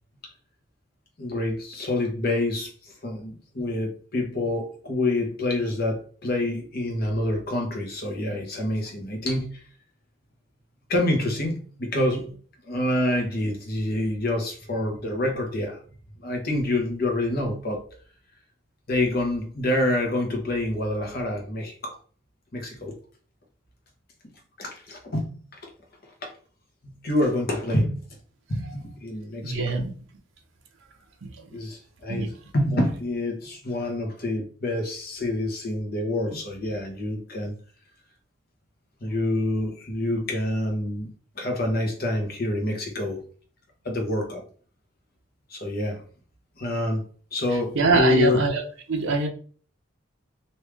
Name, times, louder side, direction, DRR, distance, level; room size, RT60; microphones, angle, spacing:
voice 1, 1.2-9.6 10.9-12.3 12.6-15.8 16.2-17.8 18.9-22.0 22.5-22.9 24.6-25.3 25.6-25.7 26.2-26.3 26.8-28.0 28.5-29.8 31.5-32.3 32.5-37.5 39.0-43.2 43.8-44.4 45.5-46.0 46.6-48.4, left 1 dB, 45° left, 1.0 m, -27 dB
voice 2, 29.4-29.9 31.2-31.6 32.1-32.3 47.7-48.6 48.9-49.3, right 4 dB, 65° right, 0.7 m, -24 dB
3.2 x 2.7 x 3.4 m
head